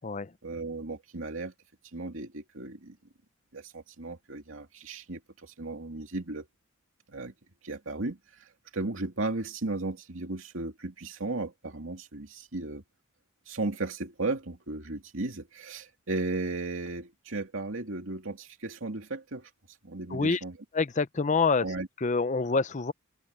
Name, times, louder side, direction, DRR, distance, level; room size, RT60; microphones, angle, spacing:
voice 1, 0.4-1.5 1.9-3.0 3.5-6.5 7.1-7.3 7.6-8.2 8.7-12.8 13.5-19.5 19.8-20.6 21.6-21.9, right 2 dB, 70° right, 2.6 m, -35 dB
voice 2, 20.1-20.4 20.7-21.6 22.0-22.9, left 4 dB, 35° left, 0.6 m, -26 dB
head